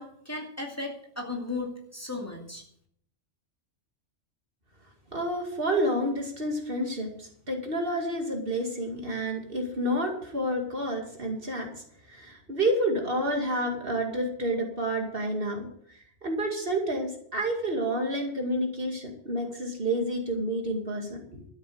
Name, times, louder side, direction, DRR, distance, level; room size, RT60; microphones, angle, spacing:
voice 1, 0.0-2.6, left 3 dB, 15° left, -1 dB, 2.4 m, -36 dB
voice 2, 5.1-11.7 12.1-16.0 16.2-21.5, right 1 dB, 50° right, 2 dB, 2.5 m, -29 dB
13.0 x 7.3 x 7.8 m, 0.65 s
omnidirectional pair, 1.2 m